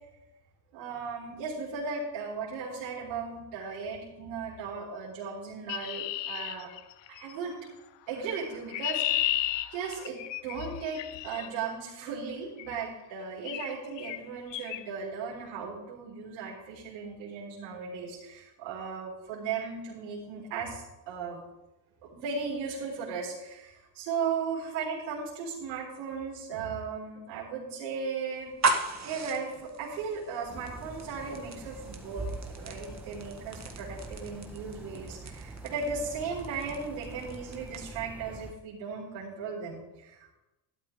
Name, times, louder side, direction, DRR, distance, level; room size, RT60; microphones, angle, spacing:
voice 1, 0.7-6.7 7.1-7.6 8.1-21.4 22.0-32.3 32.6-40.3, right 5 dB, 80° right, -4 dB, 4.0 m, -36 dB
Chirp tweet, 5.7-7.3 8.3-11.5 12.6-12.9 13.4-13.7 14.0-14.2 14.5-14.8, left 15 dB, 60° left, 0.7 m, -33 dB
sound 1, 28.4-38.1, right 3 dB, 30° right, 1.9 m, -37 dB
sound 2, 30.5-38.5, right 2 dB, 5° right, 1.4 m, -44 dB
12.0 x 12.0 x 3.8 m, 1.0 s
supercardioid pair, 80°, 49 cm